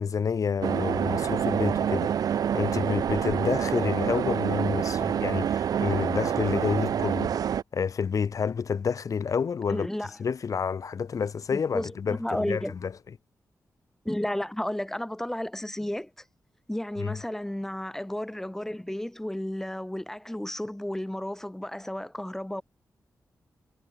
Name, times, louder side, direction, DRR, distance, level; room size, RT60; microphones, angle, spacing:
voice 1, 0.0-7.3 7.7-9.9 10.2-12.9 17.0-17.2, left 6 dB, 65° left, 1.2 m, -29 dB
sound 1, 0.6-7.6, right 9 dB, 80° right, 0.5 m, -27 dB
voice 2, 9.7-10.1 11.5-12.8 14.0-16.1 16.7-22.6, left 1 dB, 5° left, 0.5 m, -32 dB
cardioid pair, 70°, 6 cm